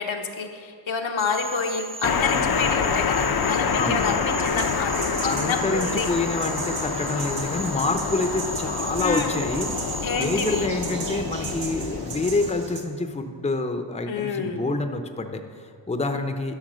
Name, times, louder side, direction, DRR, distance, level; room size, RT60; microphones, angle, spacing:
voice 1, 0.0-6.1 9.0-9.3 10.0-10.7 14.1-14.6, left 5 dB, 85° left, 3 dB, 1.1 m, -28 dB
Cricket / Frog, 1.2-10.7, right 3 dB, 15° right, 0.3 m, -37 dB
sound 1, 2.0-12.5, left 6 dB, 50° left, 0.6 m, -27 dB
voice 2, 3.7-4.1 5.2-16.5, left 2 dB, 15° left, 6 dB, 0.7 m, -27 dB
sound 2, 4.4-12.8, right 4 dB, 75° right, 1.4 m, -37 dB
12.0 x 5.9 x 6.2 m, 2.3 s
wide cardioid pair, 95°, 45 cm